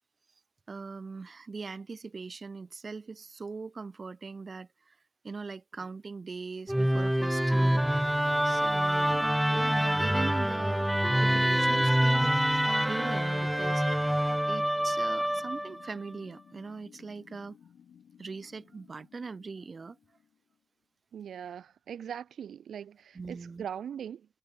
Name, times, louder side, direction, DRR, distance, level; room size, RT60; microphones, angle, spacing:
voice 1, 0.7-5.0 5.2-10.9 11.2-12.5 12.8-13.8 14.5-17.6 18.2-20.0 23.1-23.6, right 4 dB, 35° right, 0.8 m, -41 dB
sound 1, 6.7-20.6, left 8 dB, 70° left, 3.4 m, -57 dB
Musical instrument, 6.7-15.9, equal, 5° right, 0.5 m, -26 dB
voice 2, 21.1-24.3, right 8 dB, 70° right, 0.4 m, -40 dB
cardioid pair, 95°, 0 cm